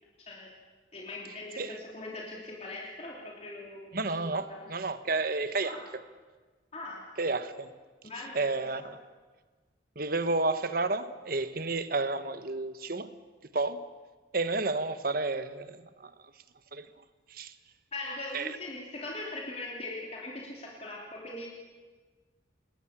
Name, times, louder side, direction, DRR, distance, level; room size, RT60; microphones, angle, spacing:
voice 1, 0.9-4.6 5.6-5.8 6.7-7.0 8.0-8.5 8.8-8.9 17.9-21.5, left 2 dB, 35° left, 3.1 m, -41 dB
voice 2, 3.9-5.8 7.2-7.7 8.3-9.0 9.9-13.1 13.5-13.9 14.3-16.1 16.7-16.9 17.3-17.5 18.3-18.6, right 3 dB, 50° right, 1.2 m, -31 dB
27.5 x 20.5 x 7.4 m
head